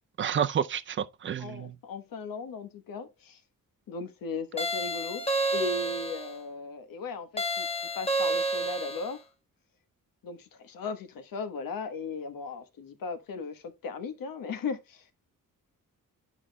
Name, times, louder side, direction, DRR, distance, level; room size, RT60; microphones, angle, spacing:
voice 1, 0.2-1.7, right 8 dB, 35° right, 0.5 m, -30 dB
voice 2, 1.4-3.4 3.9-9.2 10.2-15.1, left 4 dB, 80° left, 1.2 m, -37 dB
sound 1, 4.6-6.3 7.4-9.1, right 2 dB, 20° left, 1.0 m, -30 dB
11.0 x 4.8 x 2.2 m
wide cardioid pair, 130°, 33 cm